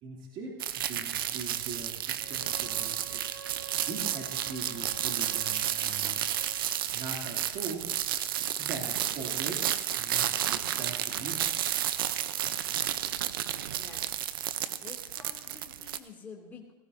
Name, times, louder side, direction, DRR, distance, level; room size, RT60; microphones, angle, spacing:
voice 1, 0.0-3.2 3.8-6.3 6.9-7.9 8.6-9.7 10.0-11.5, right 3 dB, 45° right, -2 dB, 2.9 m, -41 dB
sound 1, 0.6-16.0, right 11 dB, 90° right, 0.8 m, -32 dB
Wind instrument woodwind instrument, 2.2-6.6, right 6 dB, 65° right, 3.6 m, -49 dB
voice 2, 13.5-14.4 14.8-16.7, left 5 dB, 15° left, -3 dB, 2.7 m, -50 dB
17.5 x 16.5 x 2.8 m, 1.2 s
supercardioid pair, 120°, 11 cm